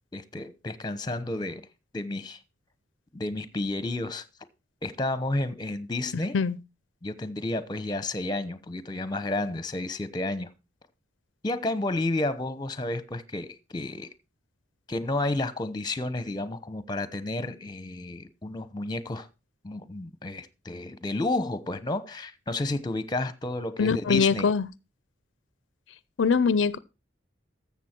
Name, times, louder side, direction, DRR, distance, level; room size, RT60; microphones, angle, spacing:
voice 1, 0.1-1.6 1.9-2.4 3.1-4.2 4.8-6.4 7.0-10.5 11.4-14.1 14.9-19.3 19.6-24.5, left 2 dB, 25° left, 0.9 m, -31 dB
voice 2, 23.8-24.7 26.2-26.8, left 5 dB, 85° left, 0.5 m, -22 dB
13.5 x 7.2 x 4.4 m
head